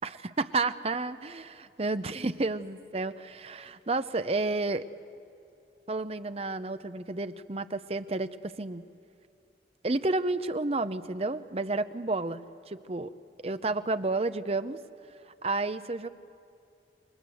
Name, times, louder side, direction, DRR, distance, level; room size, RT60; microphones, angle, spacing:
voice 1, 0.0-1.4 1.8-4.8 5.9-8.8 9.8-12.4 12.7-13.1 13.4-14.8 15.4-16.1, right 3 dB, 35° right, 12 dB, 0.7 m, -31 dB
28.5 x 21.5 x 7.8 m, 2.6 s
head